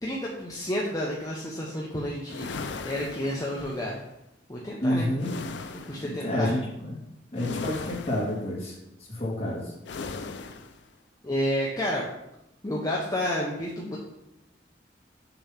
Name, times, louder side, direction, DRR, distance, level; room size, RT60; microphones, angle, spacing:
voice 1, 0.0-2.5 2.8-4.0 4.5-5.1 5.9-6.5 11.2-12.0 12.6-14.0, equal, 20° left, -4 dB, 0.8 m, -30 dB
sound 1, 2.3-3.9 5.2-6.1 7.4-8.4 9.9-10.8, left 4 dB, 75° left, 0.5 m, -37 dB
voice 2, 4.8-5.3 6.0-7.0 7.3-8.8 9.1-9.7, left 1 dB, 35° left, -5 dB, 2.1 m, -29 dB
6.8 x 3.1 x 5.7 m, 0.85 s
head